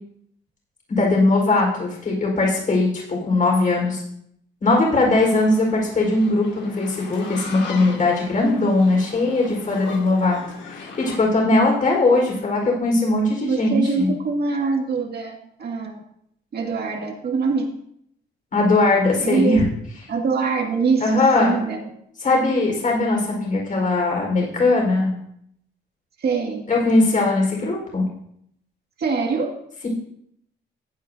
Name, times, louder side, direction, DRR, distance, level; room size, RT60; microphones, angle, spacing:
voice 1, 0.9-4.0 4.6-10.4 10.6-14.1 18.5-19.6 21.0-21.5 22.2-25.1 26.7-28.0, left 2 dB, 40° left, -1 dB, 4.5 m, -20 dB
sound 1, 5.1-11.2, left 4 dB, 65° left, 2.2 m, -39 dB
voice 2, 13.4-16.0 16.5-17.7 19.2-19.6 20.1-21.9 26.2-26.7 29.0-29.5, right 4 dB, 55° right, 2 dB, 2.1 m, -24 dB
15.0 x 9.1 x 2.8 m, 0.72 s
cardioid pair, 90°, 20 cm